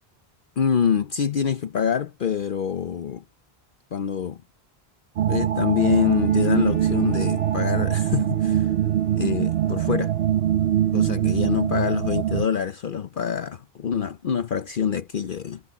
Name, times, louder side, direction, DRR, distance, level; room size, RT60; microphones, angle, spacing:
voice 1, 0.6-3.2 3.9-4.4 5.3-8.7 9.1-10.1 10.9-15.6, left 7 dB, 60° left, 0.8 m, -25 dB
sound 1, 5.2-12.5, right 11 dB, 70° right, 0.8 m, -23 dB
Bowed string instrument, 5.8-10.5, left 4 dB, 90° left, 1.0 m, -43 dB
omnidirectional pair, 1.0 m